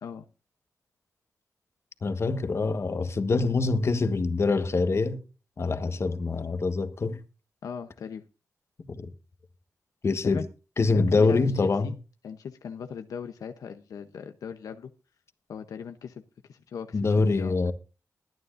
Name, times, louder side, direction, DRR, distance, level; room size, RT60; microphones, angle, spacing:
voice 1, 2.0-5.2 5.6-7.2 9.0-9.1 10.0-10.5 10.8-11.9 16.9-17.7, left 3 dB, 50° left, 1.3 m, -25 dB
voice 2, 7.6-8.2 10.2-10.4 10.9-11.9 12.2-14.9 15.5-16.2 16.5-17.6, left 7 dB, 85° left, 0.8 m, -38 dB
21.0 x 9.8 x 2.6 m
cardioid pair, 70°, 6 cm